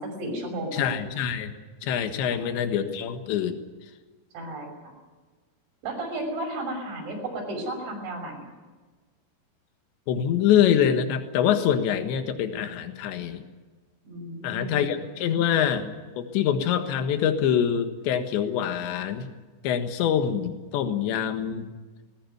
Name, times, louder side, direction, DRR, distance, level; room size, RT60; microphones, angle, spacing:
voice 1, 0.0-1.0 2.3-2.4 4.3-4.9 5.8-8.5 14.0-14.9, right 1 dB, 80° right, 3 dB, 8.3 m, -33 dB
voice 2, 0.7-1.6 1.8-3.6 10.1-13.4 14.4-19.3 19.6-21.7, left 9 dB, 75° left, 7 dB, 3.8 m, -25 dB
20.5 x 18.5 x 9.5 m, 1.3 s
omnidirectional pair, 5.2 m